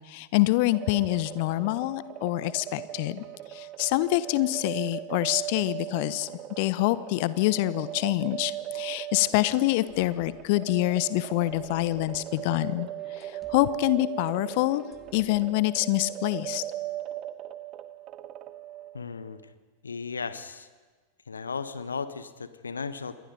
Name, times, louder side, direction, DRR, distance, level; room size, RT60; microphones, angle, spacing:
voice 1, 0.1-3.2 3.5-6.3 6.6-12.9 13.2-14.8 15.1-16.6, left 18 dB, 50° left, 17 dB, 0.9 m, -26 dB
sound 1, 0.7-19.2, right 14 dB, 35° right, 1.2 m, -38 dB
sound 2, 9.8-15.5, right 4 dB, 15° right, 2.3 m, -51 dB
voice 2, 18.9-19.4 19.8-20.7 21.3-23.1, left 5 dB, 75° left, 13 dB, 1.2 m, -35 dB
27.5 x 22.0 x 5.3 m, 1.4 s
figure-of-eight pair, 90°, 0 cm